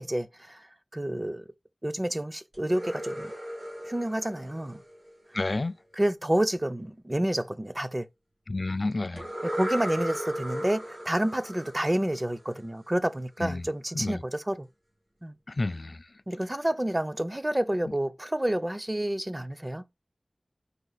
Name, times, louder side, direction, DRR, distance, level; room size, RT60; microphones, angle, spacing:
voice 1, 0.0-1.4 1.8-3.3 3.9-4.8 6.0-8.1 9.4-14.7 15.2-15.4 16.3-19.8, right 1 dB, 25° right, 0.5 m, -29 dB
sound 1, 2.5-5.5 9.2-12.9, equal, 80° right, 3.2 m, -37 dB
voice 2, 5.3-5.7 8.5-9.3 13.4-13.7 13.9-14.2 15.5-16.0, left 2 dB, 65° left, 0.3 m, -30 dB
5.2 x 2.4 x 3.9 m
wide cardioid pair, 40°, 0 cm